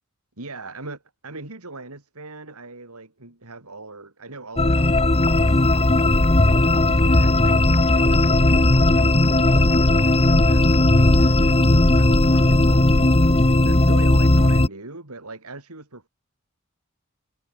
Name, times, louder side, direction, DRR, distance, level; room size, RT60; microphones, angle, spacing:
voice 1, 0.4-6.1 6.5-13.1 13.6-16.1, right 3 dB, 85° right, 4.0 m, -40 dB
sound 1, 4.6-14.7, left 2 dB, 25° left, 1.3 m, -17 dB
head